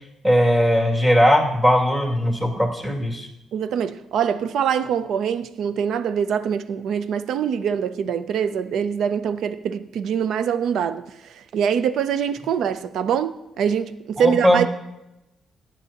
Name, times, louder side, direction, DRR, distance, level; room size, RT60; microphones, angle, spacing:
voice 1, 0.2-3.3 14.2-14.6, equal, 15° right, 2.4 m, -19 dB
voice 2, 3.5-11.0 11.3-14.7, right 8 dB, 75° right, 0.5 m, -24 dB
15.0 x 9.3 x 2.9 m
cardioid pair, 90°, 0 cm